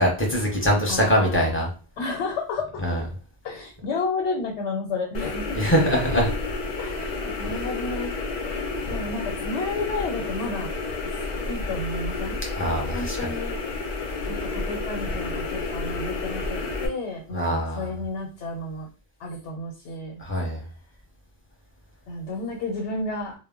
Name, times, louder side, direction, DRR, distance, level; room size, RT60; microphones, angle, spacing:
voice 1, 0.0-1.7 2.8-3.0 5.5-6.3 12.5-13.3 17.3-17.9 20.2-20.6, equal, 15° left, -1 dB, 0.6 m, -23 dB
voice 2, 0.9-1.6 2.0-2.8 3.4-5.7 6.8-8.1 8.9-10.7 11.5-12.4 12.9-13.6 14.3-18.9 19.2-20.2 22.1-23.3, left 3 dB, 85° left, 0 dB, 0.9 m, -31 dB
sound 1, 5.1-16.9, left 3 dB, 55° left, 0.5 m, -30 dB
2.1 x 2.0 x 3.5 m, 0.36 s
omnidirectional pair, 1.1 m